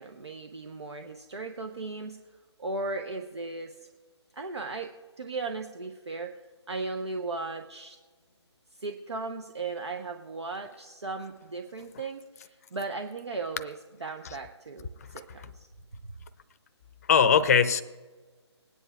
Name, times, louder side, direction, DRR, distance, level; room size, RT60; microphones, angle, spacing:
voice 1, 0.0-2.2 2.6-3.9 4.3-6.4 6.7-8.0 8.7-13.8 14.0-15.7, right 3 dB, 70° right, 5 dB, 0.9 m, -37 dB
voice 2, 15.0-15.5 17.1-17.8, left 7 dB, 35° left, 13 dB, 0.6 m, -22 dB
20.5 x 9.6 x 2.4 m, 1.4 s
figure-of-eight pair, 145°, 15 cm